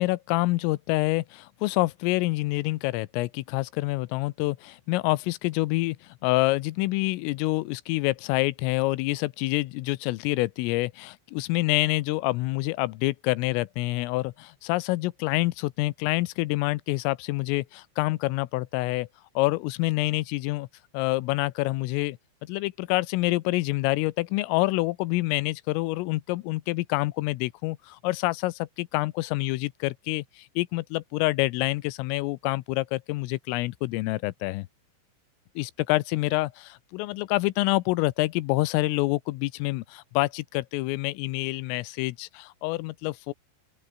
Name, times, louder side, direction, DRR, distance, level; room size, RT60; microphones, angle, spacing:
voice 1, 0.0-6.0 6.2-19.1 19.4-20.7 20.9-34.7 35.6-43.3, left 20 dB, 90° left, 3.5 m, -27 dB
open air
omnidirectional pair, 5.7 m